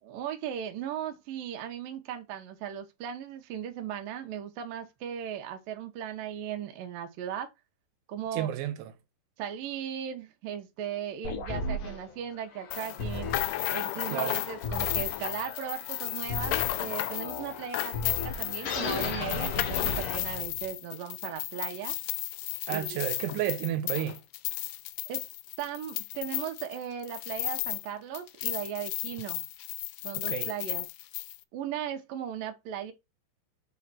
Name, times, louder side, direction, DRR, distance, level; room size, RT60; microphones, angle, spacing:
voice 1, 0.0-7.5 8.1-8.5 9.4-13.3 13.7-21.9 22.7-23.0 25.1-25.2 25.6-29.5 30.0-30.9 31.5-32.9, right 9 dB, 60° right, 2.6 m, -37 dB
voice 2, 8.3-8.9 14.1-14.4 22.7-24.2 30.3-30.5, right 12 dB, 85° right, 3.2 m, -31 dB
sound 1, 11.2-20.7, left 3 dB, 60° left, 2.5 m, -36 dB
sound 2, 12.7-27.9 28.1-31.4, left 18 dB, 85° left, 3.1 m, -34 dB
8.0 x 4.1 x 4.3 m
omnidirectional pair, 5.4 m